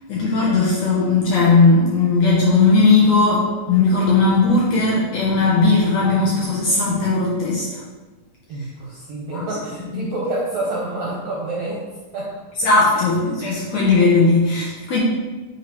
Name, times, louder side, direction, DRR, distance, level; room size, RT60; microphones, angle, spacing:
voice 1, 0.1-7.8 9.3-9.5 9.9-10.0 12.6-15.0, left 3 dB, 70° left, -5 dB, 1.7 m, -17 dB
voice 2, 8.5-11.8 12.1-12.4 12.9-13.1, right 2 dB, 70° right, -5 dB, 1.5 m, -28 dB
7.6 x 2.8 x 4.6 m, 1.2 s
omnidirectional pair, 3.9 m